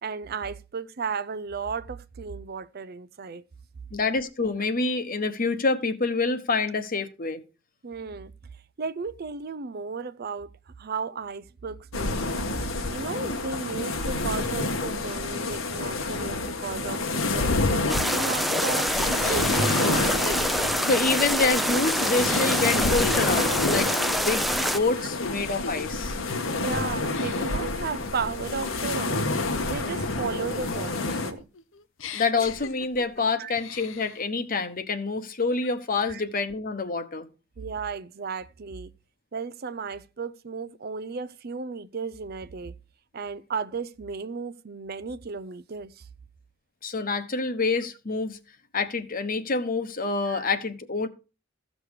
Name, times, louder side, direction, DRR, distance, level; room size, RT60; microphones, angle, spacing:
voice 1, 0.0-3.4 7.8-8.3 8.8-10.5 10.8-12.3 12.9-18.9 19.3-20.4 23.1-23.2 25.0-25.1 26.5-29.2 29.7-31.5 33.4-33.5 36.1-36.2 37.6-38.9 39.3-42.8 43.1-46.1 50.2-50.5, right 5 dB, 50° right, 0.6 m, -34 dB
voice 2, 3.9-7.4 20.9-26.2 32.1-37.3 46.8-48.4 48.7-51.1, left 3 dB, 45° left, 1.1 m, -27 dB
sound 1, 11.9-31.3, left 2 dB, 90° left, 1.5 m, -29 dB
sound 2, 15.3-15.4 16.0-18.7 19.2-21.8 22.2-23.5 23.9-24.2 24.6-25.9 26.3-26.6 27.1-27.7 28.2-30.1 30.5-33.2 33.6-34.2, left 4 dB, 70° left, 0.8 m, -36 dB
sound 3, 17.9-24.8, equal, ahead, 0.6 m, -26 dB
14.5 x 6.3 x 4.9 m
head